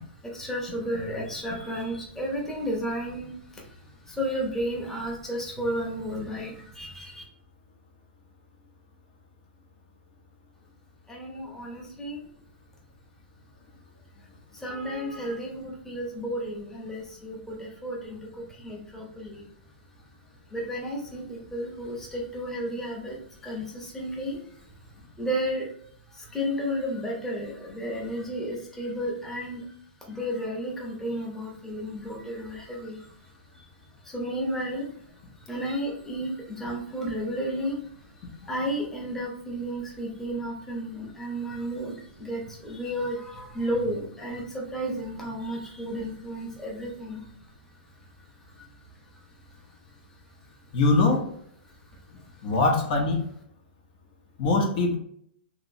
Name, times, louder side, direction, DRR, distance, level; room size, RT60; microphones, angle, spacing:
voice 1, 0.2-7.2 11.1-12.2 14.5-19.5 20.5-24.7 25.2-25.7 26.1-29.7 30.1-33.7 34.0-34.9 35.4-47.3 48.0-48.1 48.5-48.7 51.0-51.2 51.6-52.0, equal, 5° left, -3 dB, 0.9 m, -33 dB
voice 2, 50.7-51.2 52.4-53.2 54.4-55.0, left 3 dB, 50° left, 1 dB, 0.8 m, -22 dB
2.9 x 2.9 x 2.6 m, 0.68 s
hypercardioid pair, 125°, 6 cm